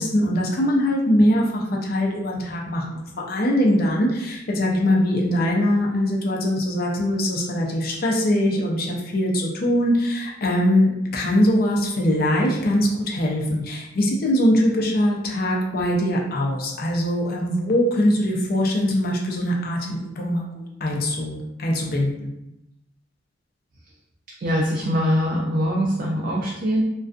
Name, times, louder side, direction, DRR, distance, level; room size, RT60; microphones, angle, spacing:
voice 1, 0.0-20.4 20.8-22.3, equal, 55° left, -1 dB, 0.5 m, -22 dB
voice 2, 24.4-26.8, equal, 50° right, -3 dB, 0.3 m, -22 dB
2.5 x 2.3 x 2.3 m, 0.88 s
head